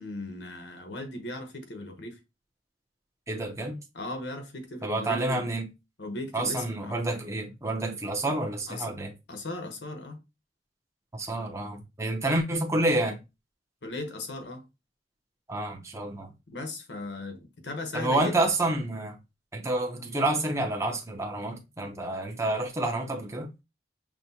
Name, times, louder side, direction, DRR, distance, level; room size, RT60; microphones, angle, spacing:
voice 1, 0.0-2.2 3.9-5.4 6.0-6.9 8.7-8.9 9.3-10.2 12.2-12.4 13.8-14.6 16.5-18.3, left 2 dB, 85° left, 1.1 m, -37 dB
voice 2, 3.3-3.8 4.8-5.7 6.3-9.1 11.1-13.2 15.5-16.3 17.9-19.2 19.5-23.5, right 2 dB, 15° right, 0.7 m, -29 dB
5.9 x 2.2 x 2.8 m
head